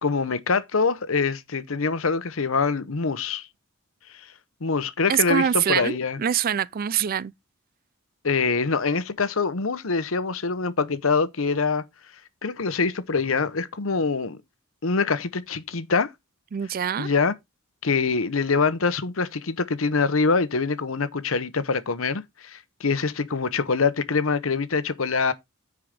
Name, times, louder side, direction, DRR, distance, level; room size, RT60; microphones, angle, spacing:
voice 1, 0.0-3.5 4.6-6.2 8.2-11.8 12.4-14.4 14.8-16.1 17.0-17.3 17.8-25.3, left 4 dB, 70° left, 0.9 m, -24 dB
voice 2, 5.1-7.3 16.5-17.1, right 9 dB, 45° right, 0.4 m, -24 dB
9.7 x 4.8 x 5.0 m
head